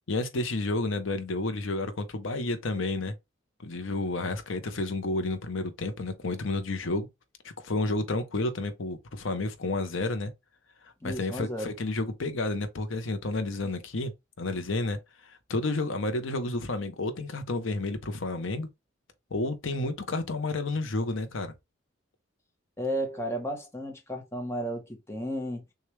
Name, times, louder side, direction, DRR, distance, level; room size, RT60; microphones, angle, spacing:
voice 1, 0.1-3.1 3.6-7.1 7.4-10.3 11.0-14.1 14.4-18.7 19.3-21.5, left 2 dB, 75° left, 0.8 m, -31 dB
voice 2, 11.0-11.7 22.8-25.6, equal, 15° left, 1.0 m, -33 dB
6.5 x 2.4 x 3.2 m
head